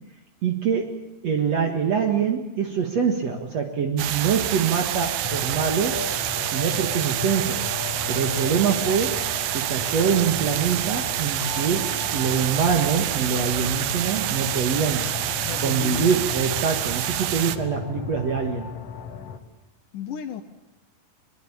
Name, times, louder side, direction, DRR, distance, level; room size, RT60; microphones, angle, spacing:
voice 1, 0.4-0.9 1.2-6.1 6.5-7.6 8.1-9.2 9.5-15.1 15.6-18.7, right 6 dB, 55° right, 3 dB, 2.6 m, -24 dB
sound 1, 4.0-17.6, right 12 dB, 85° right, 2.8 m, -27 dB
sound 2, 5.2-19.4, left 7 dB, 50° left, 2.6 m, -36 dB
voice 2, 15.4-16.2 19.9-20.4, left 8 dB, 70° left, 7 dB, 2.4 m, -33 dB
24.0 x 22.5 x 8.7 m, 1.0 s
omnidirectional pair, 4.0 m